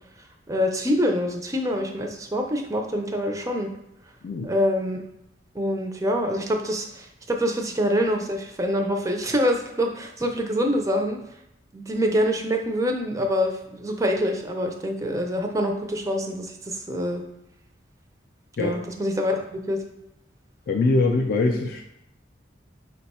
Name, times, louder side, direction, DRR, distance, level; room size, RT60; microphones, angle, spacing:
voice 1, 0.5-3.7 4.4-5.0 5.5-11.2 11.7-17.2 18.6-19.8, equal, 20° right, 3 dB, 0.4 m, -25 dB
voice 2, 20.7-21.8, left 3 dB, 55° left, 1 dB, 0.4 m, -22 dB
4.6 x 2.2 x 4.1 m, 0.80 s
head